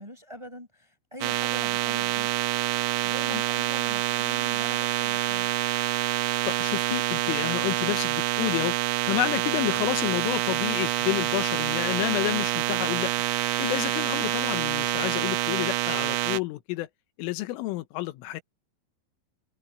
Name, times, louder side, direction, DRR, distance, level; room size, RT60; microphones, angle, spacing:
voice 1, 0.0-2.3 3.0-5.5, equal, 5° right, 5.1 m, -43 dB
sound 1, 1.2-16.4, right 15 dB, 75° right, 2.6 m, -27 dB
voice 2, 6.5-8.8 9.0-13.1 13.6-16.9 17.2-18.4, left 18 dB, 85° left, 3.5 m, -30 dB
omnidirectional pair, 5.7 m